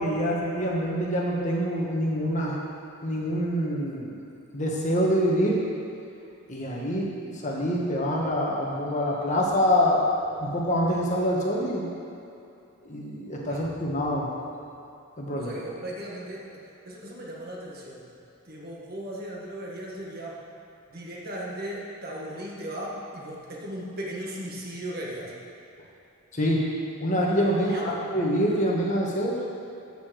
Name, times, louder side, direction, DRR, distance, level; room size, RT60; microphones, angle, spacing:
voice 1, 0.0-2.6 3.0-4.2 4.5-5.6 6.5-11.8 12.8-14.3 15.2-15.6 26.3-26.7 27.0-29.4, equal, 35° left, -3 dB, 1.6 m, -26 dB
voice 2, 15.4-18.1 18.5-20.4 20.9-25.3 27.6-28.1, right 1 dB, 45° right, -3 dB, 1.6 m, -37 dB
14.0 x 5.1 x 6.4 m, 2.8 s
head